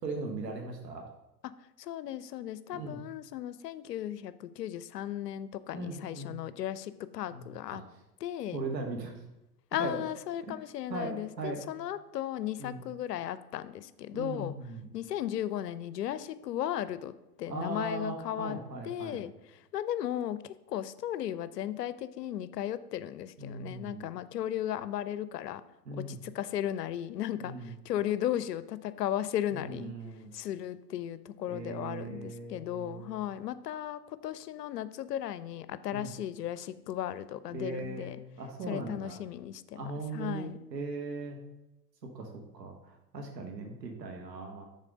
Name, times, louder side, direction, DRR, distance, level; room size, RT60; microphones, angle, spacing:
voice 1, 0.0-1.1 2.7-3.0 5.7-6.3 7.3-7.5 7.7-7.8 8.5-9.2 9.8-10.0 10.5-10.6 10.9-11.6 12.6-12.8 14.1-14.9 17.5-19.2 23.4-24.1 25.9-26.2 27.4-27.7 29.5-30.3 31.5-33.2 35.9-36.1 37.5-39.2 39.7-41.4 42.1-42.3 42.5-44.7, right 3 dB, 80° right, 2 dB, 1.2 m, -39 dB
voice 2, 1.8-7.8 8.2-8.6 9.7-14.5 14.9-17.1 17.4-18.6 18.8-25.6 26.0-29.9 30.3-38.2 38.7-39.6 40.1-40.6, left 11 dB, 75° left, 15 dB, 0.6 m, -36 dB
6.4 x 4.2 x 5.1 m, 0.92 s
figure-of-eight pair, 95°, 49 cm